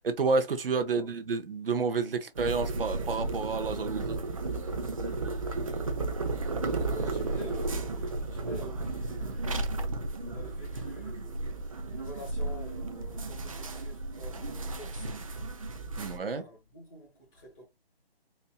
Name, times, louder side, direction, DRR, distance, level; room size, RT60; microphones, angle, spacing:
voice 1, 0.0-4.2 16.0-16.5, right 4 dB, 65° right, 0.7 m, -30 dB
sound 1, 2.4-16.2, right 2 dB, 35° right, 0.4 m, -34 dB
voice 2, 6.9-10.0 10.3-11.4 11.9-15.3 16.0-17.7, equal, 15° left, 1.3 m, -48 dB
4.3 x 2.5 x 2.3 m
figure-of-eight pair, 155°, 31 cm